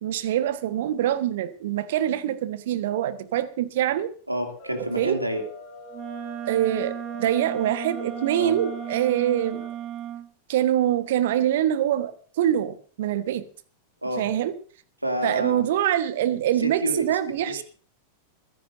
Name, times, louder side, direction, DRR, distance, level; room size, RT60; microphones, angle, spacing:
voice 1, 0.0-4.1 5.0-5.2 6.4-9.6 10.5-13.5 14.2-14.6 15.2-17.6, right 11 dB, 55° right, 13 dB, 1.4 m, -24 dB
voice 2, 4.3-5.4 8.4-8.5 14.0-14.2 15.0-15.6 16.6-17.0 17.5-17.6, right 1 dB, 85° right, 4 dB, 2.8 m, -28 dB
sound 1, 4.4-9.8, left 4 dB, 45° left, 6.1 m, -43 dB
Wind instrument woodwind instrument, 5.9-10.3, right 11 dB, 35° right, 2.0 m, -35 dB
22.5 x 16.0 x 2.7 m, 0.43 s
figure-of-eight pair, 90°, 0 cm